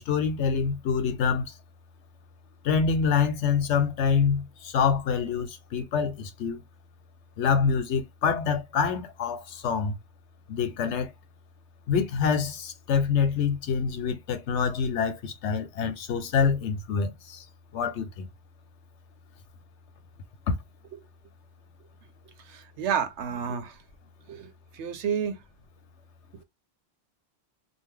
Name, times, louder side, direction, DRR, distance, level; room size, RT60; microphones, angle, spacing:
voice 1, 0.0-1.5 2.6-6.6 7.4-10.0 10.5-11.1 11.9-17.4 17.7-18.3 20.5-20.6, left 6 dB, 85° left, 1.0 m, -26 dB
voice 2, 22.8-23.7 24.3-24.5 24.8-25.3, right 7 dB, 85° right, 1.0 m, -29 dB
2.7 x 2.1 x 3.5 m
omnidirectional pair, 1.2 m